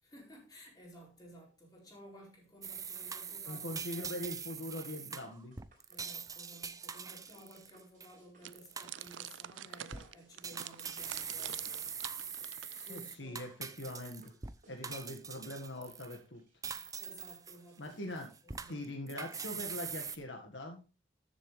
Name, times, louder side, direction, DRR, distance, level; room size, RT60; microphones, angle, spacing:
voice 1, 0.0-4.2 5.9-12.3 12.7-13.4 14.7-14.8 16.7-18.9, equal, 20° left, 4.5 m, -56 dB
sound 1, 2.6-8.1 8.5-9.3 9.7-10.0 10.4-14.5 14.8-16.2 16.6-17.9 18.2-20.2, right 6 dB, 20° right, 0.6 m, -43 dB
sound 2, 3.1-18.8, right 2 dB, 45° right, 4.3 m, -67 dB
voice 2, 3.4-5.6 12.9-13.5 13.8-14.3 14.7-16.4 17.8-18.3 18.7-20.8, left 1 dB, 75° left, 1.8 m, -42 dB
sound 3, 8.4-13.1, right 12 dB, 90° right, 0.5 m, -47 dB
13.5 x 7.5 x 3.3 m
head